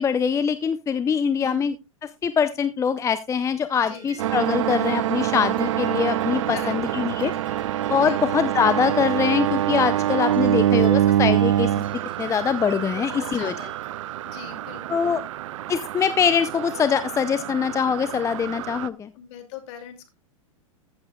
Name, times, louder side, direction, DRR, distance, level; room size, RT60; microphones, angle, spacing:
voice 1, 0.0-1.7 2.2-7.3 7.9-11.7 12.2-13.5 14.9-15.2 15.7-19.1, left 7 dB, 15° left, 13 dB, 0.6 m, -23 dB
sound 1, 3.7-13.9, right 5 dB, 30° right, 5.2 m, -48 dB
sound 2, 4.2-18.9, right 12 dB, 65° right, 0.6 m, -25 dB
voice 2, 6.5-7.0 8.0-8.2 10.4-10.7 12.9-13.7 14.2-15.1 19.1-20.1, left 9 dB, 55° left, 7 dB, 2.5 m, -41 dB
14.5 x 8.0 x 2.3 m, 0.24 s
hypercardioid pair, 105°, 17 cm